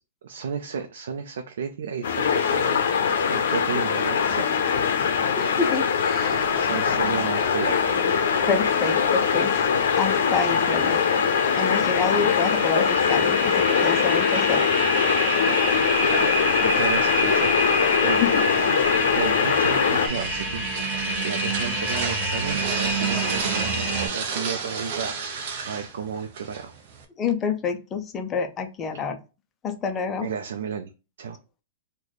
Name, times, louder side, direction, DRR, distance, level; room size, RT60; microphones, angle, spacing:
voice 1, 0.2-4.5 6.5-7.8 16.0-18.3 18.6-26.7 30.2-30.9 31.2-31.4, right 6 dB, 80° right, 4 dB, 0.5 m, -33 dB
sound 1, 2.0-20.1, left 6 dB, 70° left, 0.5 m, -22 dB
voice 2, 5.4-6.4 8.5-9.5 10.0-11.0 11.5-14.6 18.2-18.3 27.2-29.2 29.6-30.3, left 6 dB, 15° left, 6 dB, 0.4 m, -27 dB
sound 2, 6.2-24.1, right 1 dB, 15° right, 1.2 m, -29 dB
sound 3, 19.5-27.0, right 5 dB, 40° right, 0.6 m, -32 dB
3.1 x 2.2 x 3.9 m, 0.30 s
supercardioid pair, 175°, 0 cm